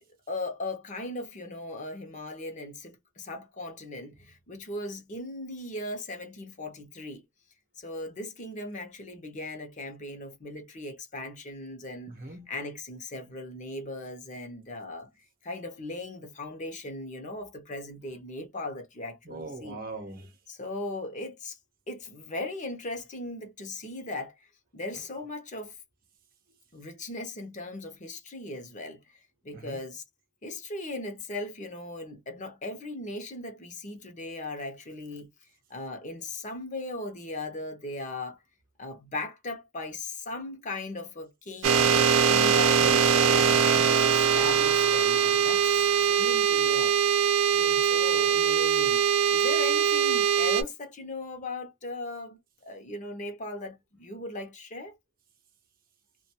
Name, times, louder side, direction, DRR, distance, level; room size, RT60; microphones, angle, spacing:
voice 1, 0.3-7.2 7.8-12.2 12.5-15.1 15.4-19.8 20.5-21.6 21.9-24.5 24.7-25.8 26.7-30.0 30.4-35.3 35.7-38.4 38.8-42.9 43.3-47.0 47.5-49.0 49.3-55.0, left 2 dB, 40° left, 0.7 m, -38 dB
voice 2, 12.1-12.5 19.2-20.4 29.5-29.8 42.8-43.8, right 3 dB, 45° right, 0.8 m, -40 dB
sound 1, 41.6-50.6, right 7 dB, 85° right, 0.5 m, -22 dB
2.4 x 2.2 x 2.8 m
head